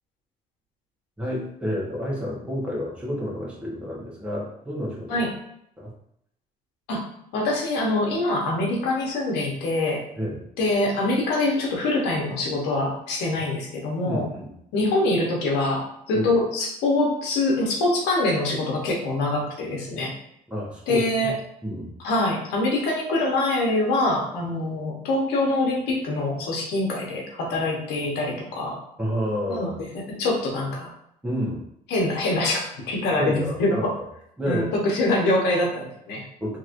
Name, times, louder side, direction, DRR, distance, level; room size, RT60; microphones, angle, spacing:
voice 1, 1.2-5.2 5.8-5.9 10.2-10.4 14.0-14.5 16.1-16.3 20.5-21.3 21.6-21.9 29.0-29.7 31.2-31.6 33.2-33.8 34.4-34.7 36.4-36.6, equal, 5° right, -5 dB, 1.1 m, -29 dB
voice 2, 7.3-10.0 10.6-14.3 14.7-20.1 20.9-21.3 22.0-28.7 29.5-29.7 30.1-30.9 31.9-32.6 32.9-33.9 34.4-36.2, left 2 dB, 85° left, -1 dB, 1.0 m, -24 dB
3.0 x 2.9 x 2.5 m, 0.74 s
cardioid pair, 110°, 17 cm